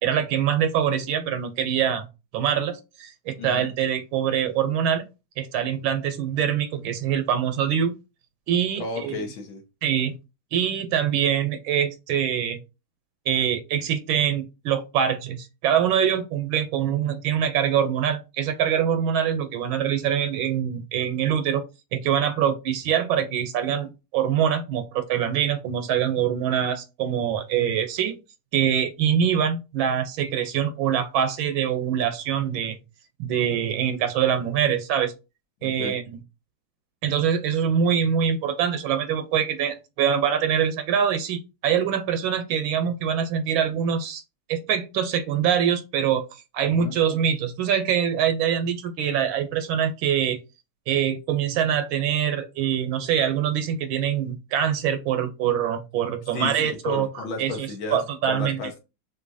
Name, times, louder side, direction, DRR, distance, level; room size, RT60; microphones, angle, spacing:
voice 1, 0.0-2.0 2.3-5.1 5.4-7.9 8.5-9.2 9.8-10.2 10.5-12.6 13.3-21.6 21.9-28.2 28.5-32.8 33.2-35.1 35.6-36.0 37.0-44.2 44.5-46.3 46.5-50.4 50.9-57.1 57.4-58.6, right 8 dB, 80° right, 1.5 m, -24 dB
voice 2, 3.4-3.7 8.8-9.6 35.6-36.0 46.6-46.9 56.3-58.8, left 4 dB, 75° left, 1.9 m, -33 dB
6.1 x 2.9 x 2.6 m
omnidirectional pair, 2.2 m